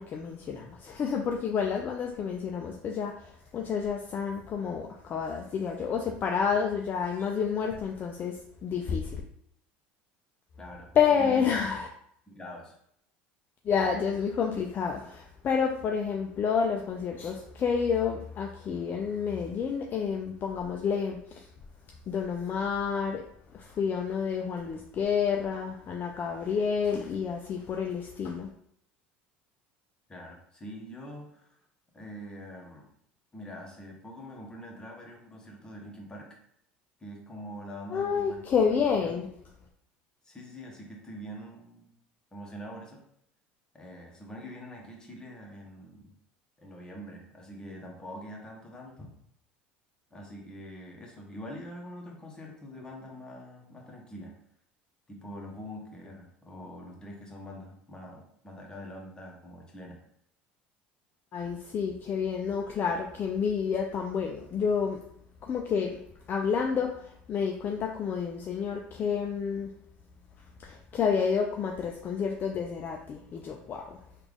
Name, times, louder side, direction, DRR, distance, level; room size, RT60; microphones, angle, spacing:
voice 1, 0.0-9.2 11.0-11.9 13.6-21.5 22.1-23.2 23.5-28.5 37.9-39.3 61.3-65.0 65.4-66.0 66.3-69.7 70.6-74.0, left 6 dB, 40° left, 2 dB, 0.4 m, -29 dB
voice 2, 10.6-11.5 12.3-12.8 30.1-31.6 31.9-32.9 33.3-36.4 37.0-38.5 38.8-39.1 40.2-41.9 42.3-43.0 43.7-46.1 46.6-49.1 50.1-54.4 55.1-60.0, equal, 15° left, -1 dB, 1.1 m, -44 dB
3.3 x 2.4 x 3.5 m, 0.70 s
supercardioid pair, 90°, 5 cm